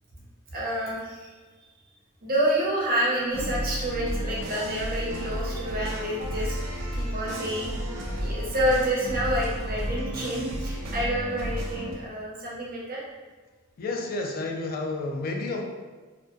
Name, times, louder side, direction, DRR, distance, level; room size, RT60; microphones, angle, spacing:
voice 1, 0.5-1.3 2.2-6.6 6.9-13.0, right 1 dB, 45° right, -5 dB, 0.7 m, -28 dB
sound 1, 3.3-11.9, equal, 85° right, 0.5 m, -32 dB
voice 2, 13.8-15.6, left 2 dB, 45° left, 2 dB, 0.3 m, -30 dB
2.2 x 2.2 x 2.6 m, 1.4 s
head